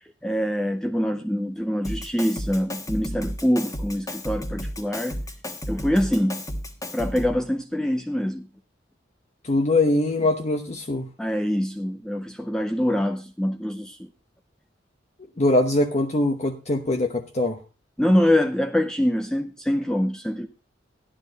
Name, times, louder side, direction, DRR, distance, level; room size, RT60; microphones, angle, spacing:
voice 1, 0.2-5.2 5.7-6.4 6.9-8.5 11.2-14.0 18.0-20.5, equal, 5° left, 0.6 m, -24 dB
Drum kit, 1.8-7.5, equal, 20° left, 1.4 m, -33 dB
voice 2, 9.4-11.1 15.4-17.6, left 2 dB, 40° left, 0.9 m, -22 dB
13.0 x 10.0 x 3.9 m
head